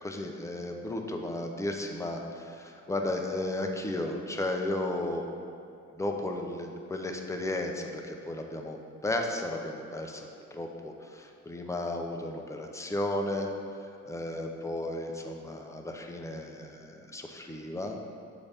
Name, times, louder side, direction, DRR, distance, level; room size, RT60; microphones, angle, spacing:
voice 1, 0.0-5.2 6.0-13.5 14.1-18.0, left 1 dB, 10° left, 2 dB, 0.6 m, -34 dB
7.0 x 4.1 x 3.4 m, 2.5 s
cardioid pair, 90°, 30 cm